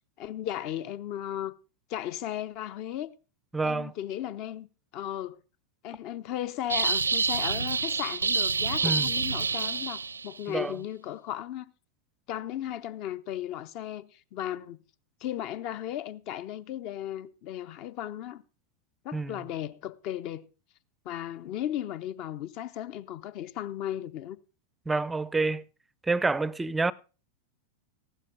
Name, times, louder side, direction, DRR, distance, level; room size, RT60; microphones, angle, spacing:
voice 1, 0.2-1.5 1.9-3.1 3.6-4.7 4.9-5.4 5.8-11.7 12.3-14.8 15.2-18.4 19.0-20.5 21.0-24.4, left 11 dB, 40° left, 0.8 m, -36 dB
voice 2, 3.5-3.9 8.8-9.1 10.5-10.8 19.1-19.4 24.9-25.6 26.1-26.9, right 3 dB, 10° right, 0.5 m, -28 dB
sound 1, 6.7-10.4, right 5 dB, 75° right, 0.6 m, -27 dB
15.0 x 12.0 x 3.8 m
figure-of-eight pair, 90°, 0 cm